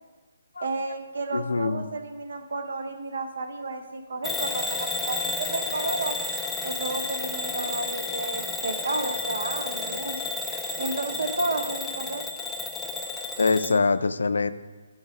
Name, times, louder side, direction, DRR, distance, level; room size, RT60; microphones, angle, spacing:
voice 1, 0.6-6.2 6.6-10.2 10.8-12.2, right 3 dB, 70° right, 7 dB, 0.9 m, -32 dB
voice 2, 1.3-1.8 13.4-14.5, left 4 dB, 90° left, 13 dB, 0.4 m, -23 dB
Bell / Alarm, 4.2-13.8, left 3 dB, 5° left, 0.4 m, -31 dB
11.5 x 4.0 x 4.7 m, 1.3 s
hypercardioid pair, 170°, 0 cm